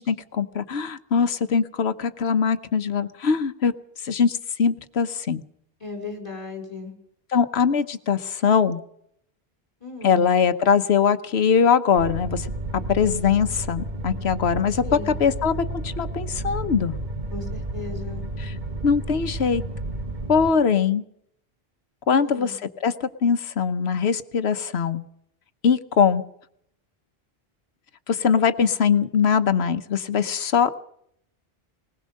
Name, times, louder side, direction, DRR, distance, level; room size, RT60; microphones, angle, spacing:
voice 1, 0.0-3.7 4.0-5.4 7.3-8.8 10.0-12.5 12.9-15.5 15.8-17.0 18.4-18.5 18.8-19.6 20.3-21.0 22.1-25.0 25.6-26.2 28.1-30.7, left 6 dB, 80° left, 11 dB, 1.2 m, -22 dB
voice 2, 5.8-6.9 9.8-10.3 14.8-15.2 17.3-18.2 22.1-22.5, left 3 dB, 30° left, 3 dB, 4.4 m, -36 dB
sound 1, 12.0-20.5, right 1 dB, 45° right, 1.4 m, -32 dB
20.0 x 20.0 x 6.5 m, 0.72 s
omnidirectional pair, 1.1 m